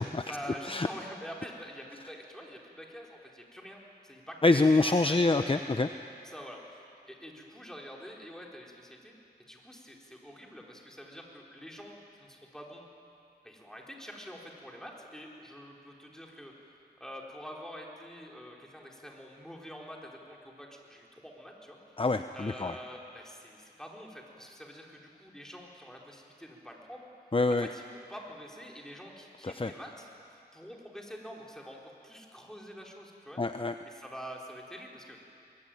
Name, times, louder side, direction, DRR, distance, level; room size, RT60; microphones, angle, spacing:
voice 1, 0.3-4.3 4.8-5.7 6.2-9.2 9.5-12.9 13.4-21.8 22.3-27.1 27.5-30.1 30.5-33.4 33.8-35.2, equal, 5° left, -1 dB, 4.6 m, -46 dB
voice 2, 4.4-5.9 22.0-22.7 27.3-27.7 29.4-29.7 33.4-33.7, left 3 dB, 30° left, 8 dB, 0.8 m, -26 dB
22.0 x 22.0 x 9.3 m, 2.5 s
wide cardioid pair, 60°, 17 cm